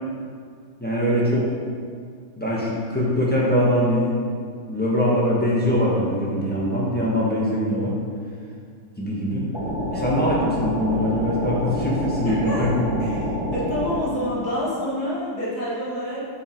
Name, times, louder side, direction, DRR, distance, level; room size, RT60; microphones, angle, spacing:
voice 1, 0.8-1.5 2.4-4.2 4.7-8.0 9.0-9.5 9.9-13.0, equal, 5° left, -7 dB, 1.0 m, -22 dB
sound 1, 9.5-14.0, left 1 dB, 15° right, 1.8 m, -27 dB
voice 2, 12.2-13.2 13.5-16.2, left 1 dB, 45° left, -8 dB, 2.4 m, -28 dB
8.5 x 5.1 x 4.6 m, 2.1 s
omnidirectional pair, 2.4 m